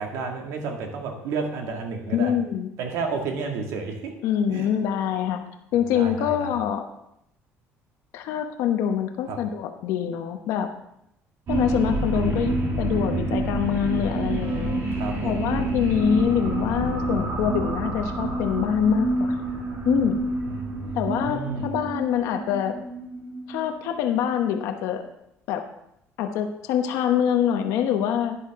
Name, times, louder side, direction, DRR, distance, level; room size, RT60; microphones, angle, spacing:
voice 1, 0.0-2.4 2.8-4.2 4.5-4.7 5.9-6.6 9.3-9.5 14.9-15.5 20.5-21.8, right 4 dB, 80° right, 2 dB, 2.0 m, -31 dB
voice 2, 2.1-2.7 4.2-5.4 5.7-6.8 8.1-10.7 11.5-14.8 15.2-19.4 19.8-20.2 20.9-22.7 23.5-25.0 25.5-25.6 26.2-28.4, left 9 dB, 85° left, 5 dB, 1.0 m, -25 dB
sound 1, 11.5-24.3, right 2 dB, 50° right, 2.5 m, -28 dB
11.5 x 9.8 x 3.6 m, 0.79 s
cardioid pair, 140°, 5 cm